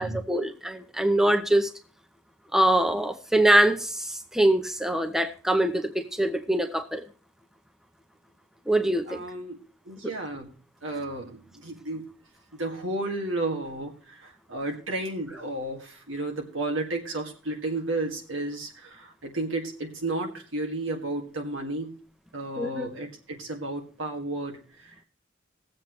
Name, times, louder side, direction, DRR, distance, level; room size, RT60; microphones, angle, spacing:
voice 1, 0.0-1.7 2.5-7.0 8.7-9.2 22.6-22.9, right 1 dB, ahead, 7 dB, 0.7 m, -23 dB
voice 2, 9.1-9.6 9.9-10.5 10.8-12.1 12.5-22.0 22.3-25.0, right 2 dB, 85° right, 2 dB, 2.0 m, -32 dB
19.5 x 7.6 x 3.1 m, 0.39 s
head